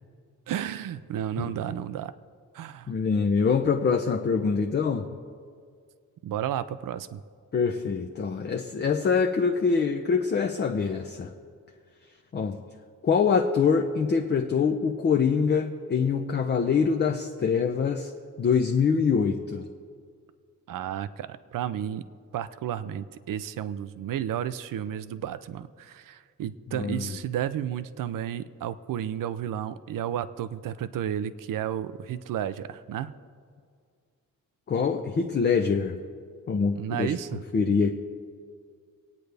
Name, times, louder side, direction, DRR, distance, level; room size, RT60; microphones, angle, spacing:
voice 1, 0.5-2.1 2.5-2.9 6.2-7.2 20.7-22.0 22.3-33.1 36.7-37.4, right 10 dB, 75° right, 14 dB, 0.6 m, -32 dB
voice 2, 2.9-5.0 7.5-11.3 12.3-12.6 13.0-18.1 18.4-19.7 26.7-27.1 34.7-36.0 36.5-37.1 37.5-37.9, left 5 dB, 30° left, 4 dB, 0.6 m, -24 dB
25.5 x 9.3 x 3.4 m, 2.1 s
wide cardioid pair, 170°, 33 cm